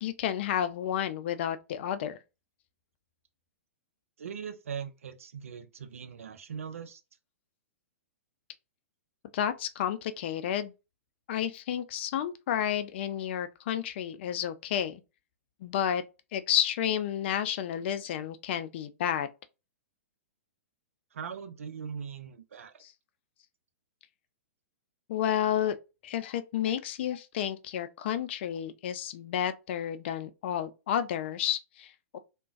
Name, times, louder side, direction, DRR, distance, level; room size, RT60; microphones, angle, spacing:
voice 1, 0.0-2.2 9.3-10.7 11.3-15.0 15.6-16.0 16.3-19.3 22.8-22.9 25.1-25.8 26.0-32.2, left 10 dB, 50° left, 0.4 m, -31 dB
voice 2, 4.2-7.0 21.1-22.8, right 7 dB, 70° right, 0.6 m, -40 dB
3.7 x 2.2 x 2.4 m
figure-of-eight pair, 115°, 8 cm